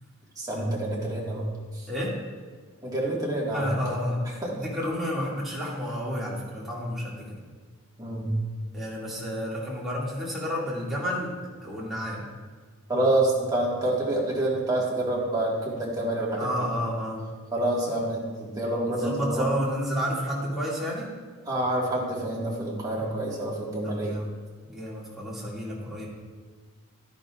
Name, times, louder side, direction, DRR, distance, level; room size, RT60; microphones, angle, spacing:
voice 1, 0.4-1.4 1.7-1.9 2.8-3.7 4.4-4.5 8.0-8.4 12.9-16.5 17.5-19.4 21.4-24.2, right 1 dB, 15° right, -5 dB, 1.8 m, -27 dB
voice 2, 1.9-2.2 3.5-7.4 8.7-12.3 16.4-17.3 19.0-21.1 23.8-24.2 24.6-26.1, equal, ahead, -7 dB, 2.2 m, -31 dB
12.0 x 10.5 x 2.5 m, 1.5 s
head